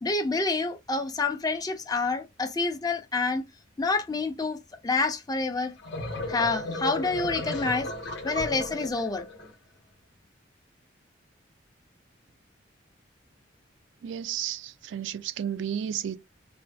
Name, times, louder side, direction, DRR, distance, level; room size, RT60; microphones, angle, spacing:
voice 1, 0.0-3.4 3.8-4.6 4.8-5.7 6.3-7.9 8.2-9.3, left 3 dB, 20° left, 0.4 m, -28 dB
sound 1, 5.6-9.5, left 2 dB, 65° left, 0.6 m, -34 dB
voice 2, 14.0-16.2, right 9 dB, 75° right, 0.3 m, -32 dB
2.5 x 2.2 x 2.2 m
head